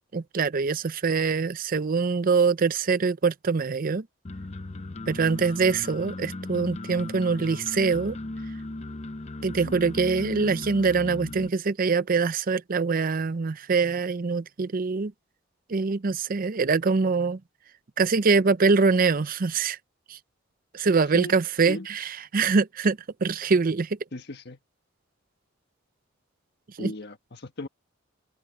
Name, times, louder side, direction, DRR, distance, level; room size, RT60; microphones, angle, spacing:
voice 1, 0.1-4.1 5.1-8.2 9.4-15.1 15.7-17.4 18.0-19.8 20.1-20.2 20.7-24.0 26.8-26.9, right 4 dB, 45° right, 0.5 m, -24 dB
sound 1, 4.2-11.5, left 2 dB, 35° left, 0.7 m, -37 dB
voice 2, 9.5-9.8 21.1-21.3 21.7-21.9 24.1-24.6 26.8-27.7, left 1 dB, 55° left, 1.6 m, -37 dB
head